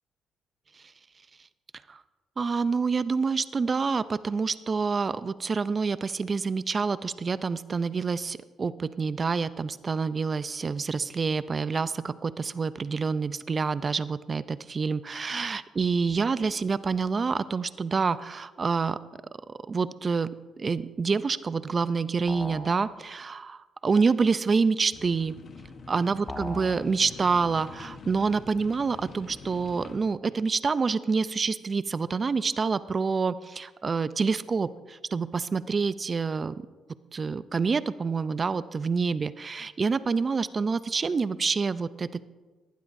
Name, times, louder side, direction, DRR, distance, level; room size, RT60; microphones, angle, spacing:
voice 1, 2.4-19.0 19.5-20.3 20.6-25.3 25.9-36.5 37.1-42.2, right 4 dB, 35° right, 15 dB, 0.5 m, -27 dB
sound 1, 22.3-22.7 26.3-26.7, left 1 dB, 25° left, 1.7 m, -37 dB
sound 2, 24.9-30.0, left 4 dB, 50° left, 1.1 m, -46 dB
18.5 x 12.0 x 2.6 m, 1.3 s
cardioid pair, 90°, 0 cm